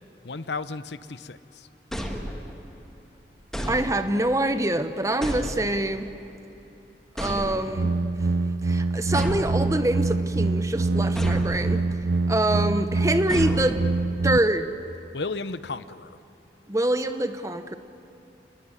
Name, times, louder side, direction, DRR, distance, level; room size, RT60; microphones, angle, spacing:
voice 1, 0.2-1.7 15.1-16.2, left 3 dB, 75° left, 14 dB, 0.8 m, -34 dB
sound 1, 1.9-2.8 3.5-4.4 5.2-6.1 7.2-8.0 9.1-10.2 11.2-11.9 13.3-14.2, equal, 5° left, 2.0 m, -33 dB
voice 2, 3.6-6.1 7.2-7.9 8.6-11.8 12.3-13.8 14.2-14.7 16.7-17.7, right 1 dB, 20° right, 10 dB, 1.1 m, -25 dB
sound 2, 7.7-14.4, right 3 dB, 70° right, 0.6 m, -25 dB
28.5 x 20.5 x 9.9 m, 3.0 s
head